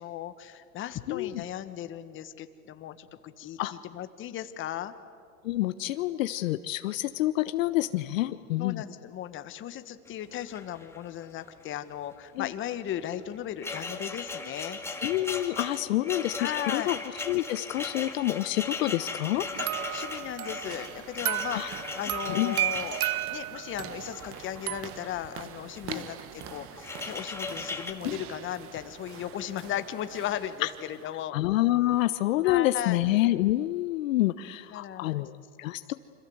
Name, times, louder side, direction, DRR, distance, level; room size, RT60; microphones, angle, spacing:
voice 1, 0.0-4.9 8.6-14.8 16.4-16.9 19.6-23.0 23.3-31.4 32.4-33.0 34.7-35.3, left 11 dB, 25° left, 10 dB, 1.5 m, -36 dB
voice 2, 5.4-8.8 12.4-12.5 15.0-16.4 16.7-17.0 17.3-19.5 21.5-21.7 22.3-22.6 25.9-26.1 28.0-28.2 30.6-30.7 31.3-35.9, left 16 dB, 60° left, 11 dB, 1.1 m, -27 dB
sound 1, 10.1-10.2 10.4-11.2 11.5-11.8 12.9-25.1 25.7-26.1 26.4-27.9, left 3 dB, 5° left, 2.3 m, -38 dB
sound 2, 19.3-31.3, right 10 dB, 30° right, 1.3 m, -46 dB
sound 3, 19.6-24.8, right 15 dB, 70° right, 1.0 m, -33 dB
28.5 x 26.5 x 8.0 m, 2.3 s
hypercardioid pair, 125°, 45 cm